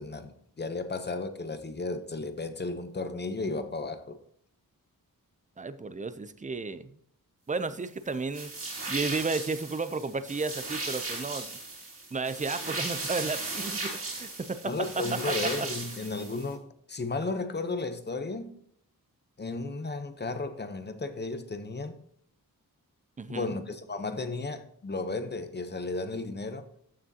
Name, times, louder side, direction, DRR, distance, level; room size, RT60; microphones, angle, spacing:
voice 1, 0.0-4.2 14.6-18.5 19.4-22.0 23.3-26.7, left 3 dB, 30° left, 0.8 m, -34 dB
voice 2, 5.6-7.0 7.5-8.5 8.9-11.5 12.1-15.7 23.2-23.5, right 4 dB, 20° right, 0.4 m, -33 dB
sound 1, 8.3-16.5, right 2 dB, 35° right, 2.8 m, -36 dB
14.0 x 6.1 x 2.8 m
wide cardioid pair, 160°, 36 cm